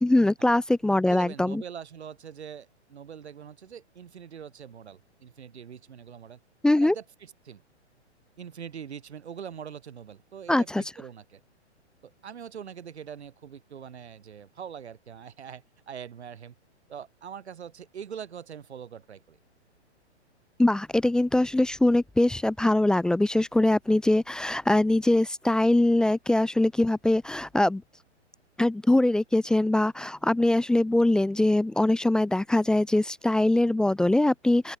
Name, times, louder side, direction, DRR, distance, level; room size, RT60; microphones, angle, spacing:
voice 1, 0.0-1.6 6.6-6.9 10.5-10.8 20.6-27.8 28.6-34.8, left 1 dB, ahead, 0.5 m, -22 dB
voice 2, 1.0-6.4 6.8-7.6 8.4-11.4 12.0-16.5 16.9-19.4, right 8 dB, 65° right, 7.4 m, -43 dB
open air
figure-of-eight pair, 125°, 35 cm